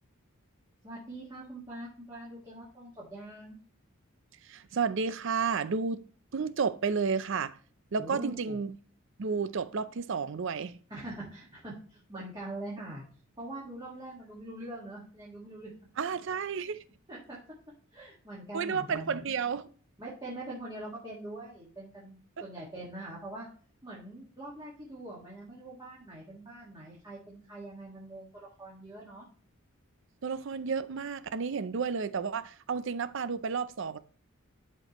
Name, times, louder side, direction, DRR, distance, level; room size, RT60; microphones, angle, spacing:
voice 1, 0.8-3.6 8.0-8.6 10.9-13.0 13.4-15.7 17.1-17.4 17.9-19.2 20.0-23.5 23.8-29.3, right 1 dB, 20° right, 1.7 m, -43 dB
voice 2, 4.5-6.0 6.3-7.6 7.9-8.7 9.2-10.8 16.0-16.8 18.5-19.7 22.4-22.5 30.2-34.0, right 5 dB, 60° right, 0.5 m, -31 dB
11.5 x 4.3 x 3.0 m
head